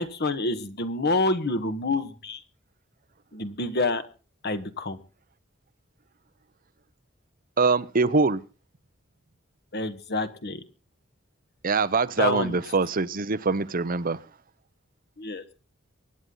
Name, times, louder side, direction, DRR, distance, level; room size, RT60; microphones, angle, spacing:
voice 1, 0.0-2.4 3.3-4.0 4.4-5.0 9.7-10.6 12.2-12.6 15.2-15.4, left 2 dB, 50° left, 1.5 m, -27 dB
voice 2, 7.6-8.4 11.6-14.2, right 4 dB, 45° right, 0.8 m, -23 dB
24.0 x 9.7 x 3.9 m
head